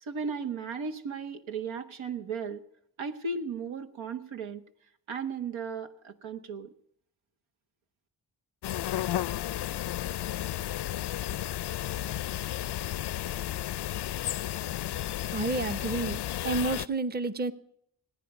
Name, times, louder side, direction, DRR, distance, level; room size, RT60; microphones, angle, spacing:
voice 1, 0.0-2.6 3.0-4.6 5.1-6.7, right 5 dB, 75° right, 7 dB, 1.2 m, -35 dB
sound 1, 8.6-16.9, left 13 dB, 60° left, 0.5 m, -33 dB
voice 2, 15.3-17.5, right 3 dB, 20° right, 11 dB, 0.8 m, -30 dB
19.5 x 9.3 x 6.0 m, 0.72 s
supercardioid pair, 50°, 47 cm